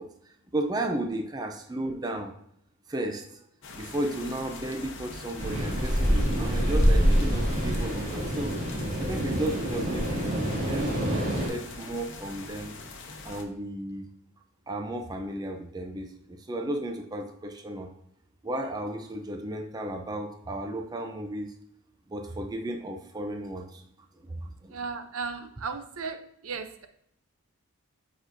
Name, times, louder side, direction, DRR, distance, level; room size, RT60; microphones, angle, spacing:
voice 1, 0.0-2.3 2.9-3.4 3.7-8.6 9.0-12.8 13.2-14.1 14.7-17.9 18.4-21.5 22.1-23.8 24.3-24.9, right 1 dB, 20° right, 4 dB, 0.5 m, -34 dB
sound 1, 3.6-13.4, left 3 dB, 55° left, 0.9 m, -42 dB
sound 2, 5.4-11.5, equal, 35° right, 2.2 m, -26 dB
voice 2, 24.7-26.2 26.4-26.9, right 5 dB, 65° right, 8 dB, 0.6 m, -35 dB
9.2 x 4.2 x 2.6 m, 0.74 s
head